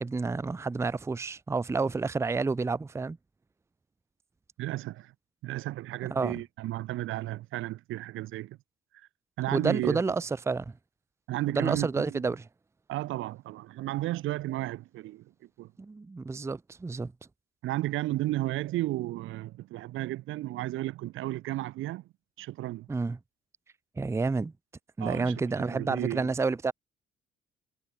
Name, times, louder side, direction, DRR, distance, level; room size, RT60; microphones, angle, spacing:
voice 1, 0.0-3.2 6.1-6.4 9.5-10.7 11.5-12.4 15.8-17.1 22.9-23.2 24.0-24.5 25.0-26.7, right 4 dB, 15° right, 0.5 m, -29 dB
voice 2, 4.6-5.1 5.4-8.6 9.4-10.0 11.3-12.2 12.9-15.3 15.6-15.7 17.6-22.0 22.4-22.9 25.0-26.3, right 16 dB, 85° right, 1.1 m, -33 dB
cardioid pair, 90°, 20 cm